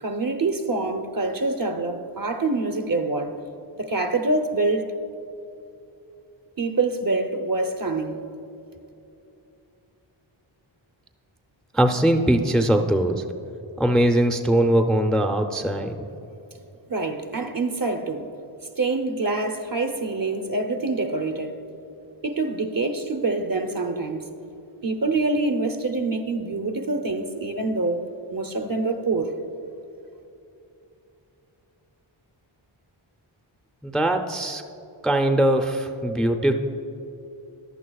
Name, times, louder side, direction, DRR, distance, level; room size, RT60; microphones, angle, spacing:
voice 1, 0.0-3.4 3.8-4.9 6.6-8.2 16.9-18.3 18.8-21.5 22.2-24.2 24.8-28.1 28.3-29.3, right 3 dB, 45° right, 0.8 m, -25 dB
voice 2, 11.7-13.2 13.8-16.0 33.8-34.6 35.0-36.5, right 1 dB, ahead, 0.5 m, -21 dB
15.5 x 11.0 x 2.3 m
wide cardioid pair, 40°, 50 cm